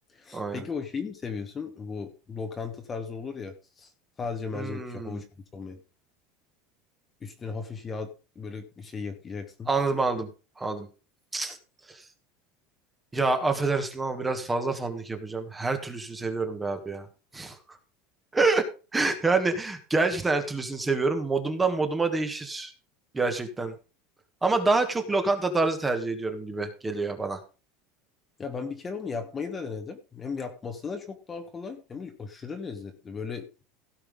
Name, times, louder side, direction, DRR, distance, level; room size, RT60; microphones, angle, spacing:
voice 1, 0.1-3.9 4.2-5.2 5.5-5.8 7.2-9.7 28.4-33.6, left 5 dB, 15° left, 6 dB, 1.3 m, -36 dB
voice 2, 4.5-5.2 9.7-10.3 10.6-10.9 11.3-11.6 11.9-12.0 13.1-17.1 17.3-17.6 18.3-18.6 18.9-22.7 23.1-23.7 24.4-27.4, right 3 dB, 10° right, 7 dB, 1.5 m, -27 dB
16.5 x 5.6 x 5.3 m, 0.33 s
cardioid pair, 175°, 0 cm